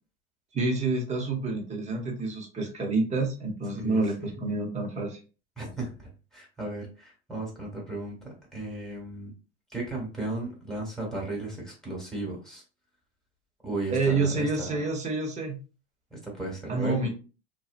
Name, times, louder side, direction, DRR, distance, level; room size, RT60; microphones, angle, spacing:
voice 1, 0.5-5.2 13.9-15.6 16.7-17.1, right 3 dB, 20° right, 1 dB, 0.9 m, -28 dB
voice 2, 3.7-4.4 5.6-9.3 9.7-12.6 13.6-14.8 16.1-17.1, right 2 dB, ahead, -2 dB, 1.4 m, -35 dB
2.8 x 2.3 x 2.4 m, 0.34 s
hypercardioid pair, 100°, 33 cm